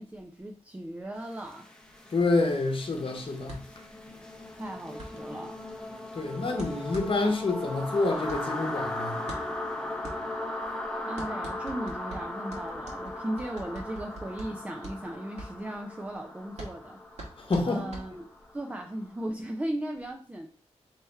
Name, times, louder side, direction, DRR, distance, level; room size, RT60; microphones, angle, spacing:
voice 1, 0.0-1.7 4.6-5.6 7.2-7.4 11.1-17.0 17.3-18.3 18.5-20.5, right 1 dB, 10° right, 0.4 m, -37 dB
sound 1, 1.3-19.1, left 1 dB, 5° left, 0.7 m, -38 dB
voice 2, 2.1-3.6 6.1-9.2 17.4-17.9, left 3 dB, 50° left, 1.0 m, -28 dB
sound 2, 3.5-18.6, right 1 dB, 75° right, 1.4 m, -45 dB
3.3 x 3.1 x 4.4 m
wide cardioid pair, 120°, 12 cm